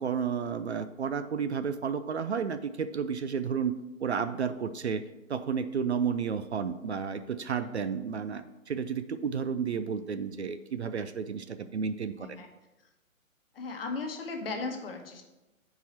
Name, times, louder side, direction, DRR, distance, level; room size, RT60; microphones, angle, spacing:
voice 1, 0.0-5.0 5.3-12.4, right 6 dB, 55° right, 11 dB, 0.5 m, -32 dB
voice 2, 13.5-15.3, left 3 dB, 45° left, 4 dB, 1.2 m, -36 dB
7.9 x 4.7 x 4.3 m, 1.0 s
figure-of-eight pair, 140°, 41 cm